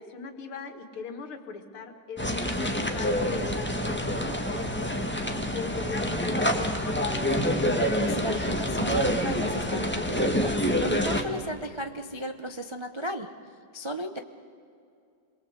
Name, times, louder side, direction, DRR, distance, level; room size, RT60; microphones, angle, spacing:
voice 1, 0.0-5.1 5.5-7.4, left 5 dB, 75° left, 6 dB, 2.7 m, -39 dB
sound 1, 2.2-11.2, equal, 5° left, 1.4 m, -27 dB
voice 2, 7.7-13.3 13.7-14.2, right 1 dB, 45° right, 6 dB, 0.3 m, -35 dB
27.5 x 22.5 x 8.1 m, 2.4 s
omnidirectional pair, 2.4 m